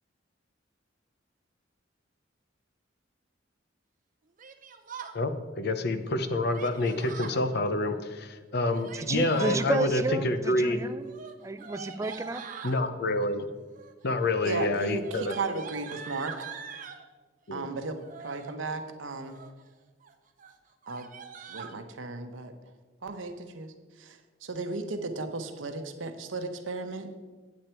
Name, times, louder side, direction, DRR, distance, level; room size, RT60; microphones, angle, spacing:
Yell, 4.4-5.2 6.5-7.4 8.6-9.7 11.0-12.8 13.7-14.1 14.4-17.0 18.0-18.5 19.1-19.6 20.0-20.1 20.4-20.5 20.8-21.7, right 7 dB, 45° right, 0.7 m, -43 dB
voice 1, 5.1-10.8 12.6-13.5 14.0-15.4 17.5-17.7, left 2 dB, 55° left, 9 dB, 0.7 m, -28 dB
voice 2, 8.9-11.1 11.4-12.5, right 2 dB, 15° right, 9 dB, 0.4 m, -31 dB
voice 3, 14.4-16.4 17.5-19.4 20.9-21.1 21.5-22.5 23.0-27.1, right 3 dB, 85° right, 7 dB, 0.9 m, -35 dB
8.6 x 8.3 x 4.5 m, 1.4 s
head